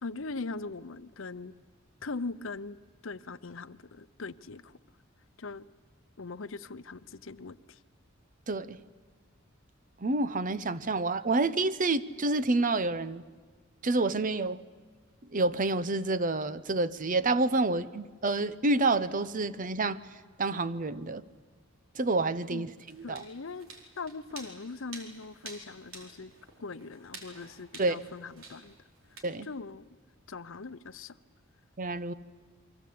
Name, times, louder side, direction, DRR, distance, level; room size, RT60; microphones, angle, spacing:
voice 1, 0.0-1.5 2.0-2.8 3.0-4.8 5.4-5.7 6.2-7.8 22.5-22.7 23.0-23.7 24.0-26.3 26.6-28.7 29.4-29.9 30.3-31.2, left 3 dB, 70° left, 0.8 m, -40 dB
voice 2, 8.5-8.8 10.0-13.2 13.8-14.6 15.3-20.0 20.4-21.2 22.0-22.7 23.0-23.2 27.8-28.0 29.2-29.5 31.8-32.1, right 2 dB, 40° right, 0.8 m, -28 dB
sound 1, 22.8-29.2, right 3 dB, 80° right, 4.6 m, -49 dB
29.0 x 23.5 x 8.6 m
head